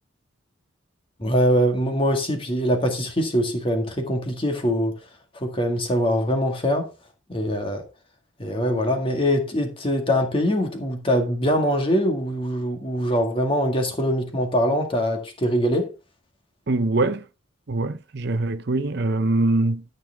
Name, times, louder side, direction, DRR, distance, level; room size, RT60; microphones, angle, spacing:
voice 1, 1.2-4.9 5.3-6.9 7.3-7.8 8.4-15.9, equal, 25° left, 1.9 m, -23 dB
voice 2, 16.7-17.2 17.7-19.8, right 2 dB, 55° right, 0.7 m, -23 dB
12.5 x 6.7 x 3.6 m
head